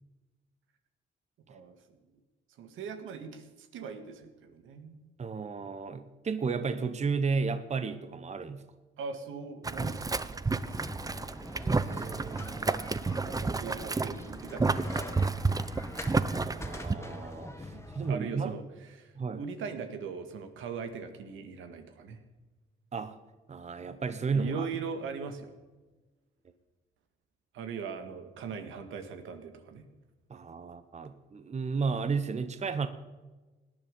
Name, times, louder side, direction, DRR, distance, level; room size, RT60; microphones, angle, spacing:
voice 1, 1.5-2.0 2.6-5.0 9.0-10.2 10.5-10.9 13.3-15.5 17.7-22.2 24.3-25.5 27.5-29.8, right 5 dB, 85° right, 7 dB, 1.9 m, -40 dB
voice 2, 5.2-8.6 11.6-13.0 16.3-18.5 19.2-19.4 22.9-23.2 23.5-24.7 30.3-32.9, right 5 dB, 35° right, 11 dB, 1.0 m, -33 dB
Boiling, 9.6-17.0, right 3 dB, 20° right, 0.6 m, -31 dB
sound 1, 10.6-18.1, left 2 dB, 15° left, 1.8 m, -45 dB
18.0 x 10.0 x 5.4 m, 1.2 s
cardioid pair, 90°, 20 cm